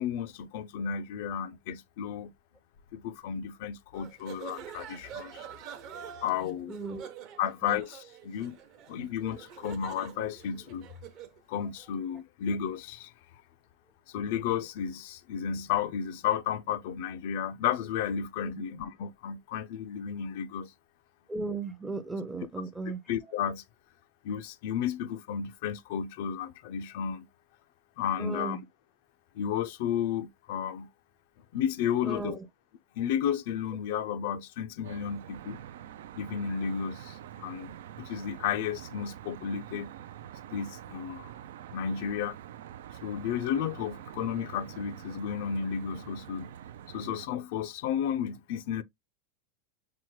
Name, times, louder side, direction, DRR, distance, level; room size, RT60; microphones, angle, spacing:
voice 1, 0.0-2.3 2.9-5.5 6.2-6.8 7.4-8.6 8.9-10.9 11.5-13.1 14.1-20.7 23.1-23.6 24.2-27.3 28.0-28.6 29.3-30.9 31.5-32.4 33.0-35.6 36.2-39.9 40.5-41.3 41.7-42.4 43.0-46.5 46.9-48.8, left 8 dB, 65° left, 0.4 m, -33 dB
sound 1, 3.9-11.4, right 9 dB, 45° right, 0.8 m, -46 dB
voice 2, 6.7-7.1 7.6-7.8 18.4-18.7 21.3-23.0 28.2-28.6 32.0-32.4, right 3 dB, 10° right, 0.5 m, -36 dB
Traffic noise roadway noise, 34.8-47.3, right 11 dB, 80° right, 0.3 m, -46 dB
5.8 x 2.2 x 3.0 m
supercardioid pair, 135°, 0 cm